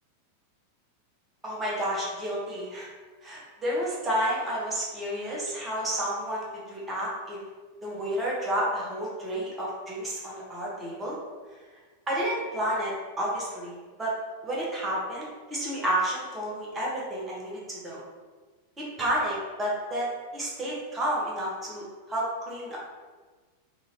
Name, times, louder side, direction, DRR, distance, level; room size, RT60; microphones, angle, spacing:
voice 1, 1.4-2.9 3.2-7.4 7.8-11.2 12.1-14.1 14.4-18.0 18.8-22.8, right 1 dB, 15° right, -6 dB, 1.2 m, -31 dB
3.6 x 2.7 x 2.9 m, 1.4 s
figure-of-eight pair, 90°, 0 cm